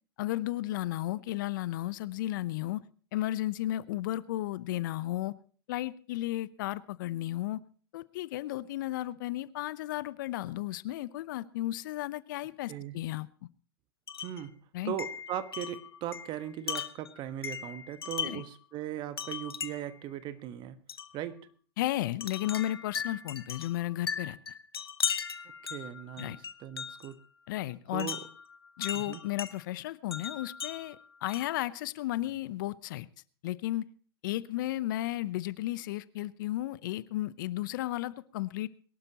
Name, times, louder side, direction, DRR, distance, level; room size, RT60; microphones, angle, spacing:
voice 1, 0.2-2.8 3.1-5.3 5.7-7.6 7.9-13.3 14.7-14.9 18.2-18.4 21.8-24.4 26.2-26.4 27.5-28.1 28.8-33.1 33.4-33.9 34.2-38.7, left 15 dB, 55° left, 19 dB, 0.7 m, -34 dB
Wind chime, 14.1-14.4 15.0-18.6 19.2-20.0 20.9-21.1 22.2-27.1 28.0-29.5 30.1-31.6, left 7 dB, 80° left, 1.0 m, -38 dB
voice 2, 14.2-14.6 14.8-20.8 21.1-21.5 25.6-27.2 27.9-28.2 28.9-29.2, right 11 dB, 35° right, 13 dB, 1.3 m, -38 dB
22.0 x 12.0 x 2.9 m, 0.42 s
hypercardioid pair, 100°, 13 cm